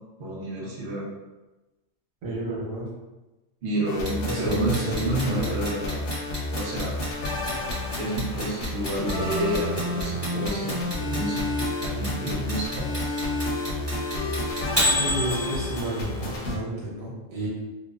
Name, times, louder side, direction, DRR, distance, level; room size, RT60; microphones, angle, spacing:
voice 1, 0.2-1.0 3.6-6.1 6.5-7.0 8.0-12.9, right 1 dB, 50° right, -6 dB, 0.8 m, -30 dB
voice 2, 2.2-2.9 4.2-5.5 14.9-17.5, right 1 dB, 80° right, -6 dB, 1.3 m, -31 dB
sound 1, 3.8-16.6, left 1 dB, 70° left, 0.8 m, -30 dB
Clock, 4.1-16.0, equal, 20° right, 1.3 m, -29 dB
3.0 x 2.1 x 2.3 m, 1.1 s
omnidirectional pair, 1.4 m